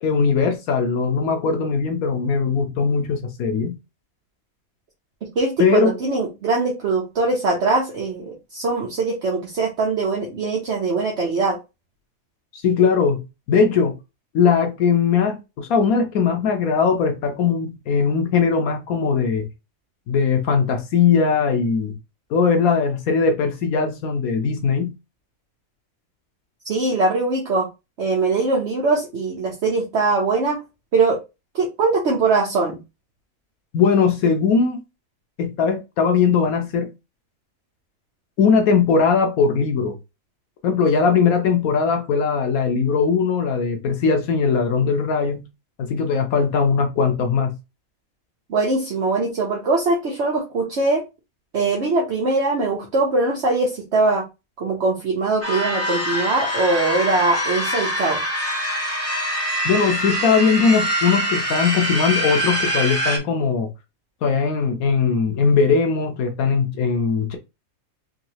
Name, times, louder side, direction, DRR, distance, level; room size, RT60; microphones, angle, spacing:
voice 1, 0.0-3.7 5.6-5.9 12.5-14.0 14.3-19.5 20.1-22.0 22.3-24.9 33.7-34.8 35.4-36.9 38.4-40.0 40.6-45.4 45.8-47.5 59.6-63.7 64.2-67.4, left 5 dB, 85° left, 1.3 m, -20 dB
voice 2, 5.2-11.6 26.6-27.7 28.0-30.6 30.9-31.2 31.5-32.8 48.5-51.0 51.5-54.2 54.6-58.2, right 3 dB, 55° right, 1.2 m, -21 dB
sound 1, 55.4-63.2, equal, 10° left, 1.1 m, -24 dB
3.7 x 3.0 x 2.9 m
omnidirectional pair, 1.5 m